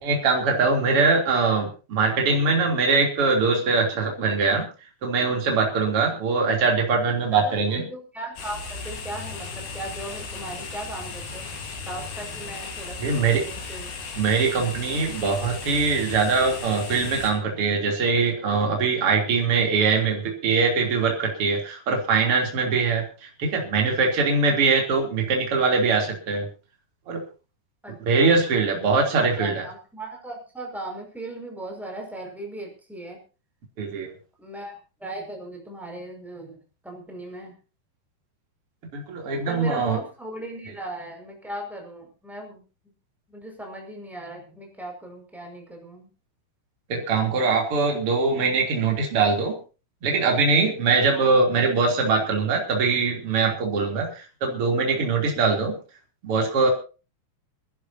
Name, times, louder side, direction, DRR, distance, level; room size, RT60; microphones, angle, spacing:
voice 1, 0.0-4.7 5.0-7.8 13.0-13.4 14.1-26.5 27.1-27.2 28.1-29.7 33.8-34.1 38.9-40.0 46.9-49.6 50.0-55.8 56.2-56.7, right 4 dB, 35° right, 1 dB, 3.8 m, -22 dB
voice 2, 7.3-13.9 27.8-28.5 28.9-29.0 29.3-33.2 34.4-37.6 39.5-42.6 43.3-46.1 51.2-51.3, right 1 dB, ahead, 0 dB, 5.3 m, -38 dB
sound 1, 8.4-17.3, left 4 dB, 80° left, 5.3 m, -36 dB
27.5 x 11.0 x 2.8 m, 0.34 s
omnidirectional pair, 4.6 m